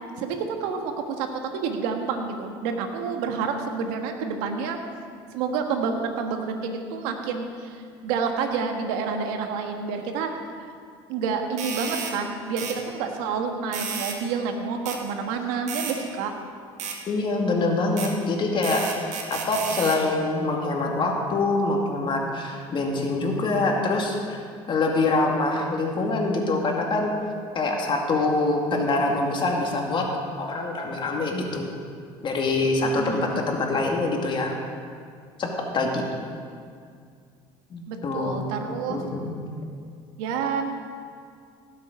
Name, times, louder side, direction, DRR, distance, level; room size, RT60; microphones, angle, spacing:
voice 1, 0.2-1.3 1.5-4.8 5.3-10.3 10.6-10.7 11.1-16.3 32.8-33.5 37.9-39.0 40.2-40.6, right 5 dB, 80° right, 4 dB, 1.5 m, -29 dB
sound 1, 11.6-12.1 12.6-12.8 13.7-14.2 14.9-15.0 15.7-16.0 16.8-17.0 18.0-18.1 18.6-20.0, right 6 dB, 60° right, 2.0 m, -32 dB
voice 2, 17.1-18.9 19.3-24.4 24.7-27.1 27.5-30.1 30.4-31.7 32.2-34.6 35.4-35.5 35.7-36.0 37.7-38.4 38.9-39.3, left 3 dB, 40° left, 1 dB, 2.3 m, -25 dB
17.5 x 7.5 x 5.2 m, 2.2 s
supercardioid pair, 85°, 13 cm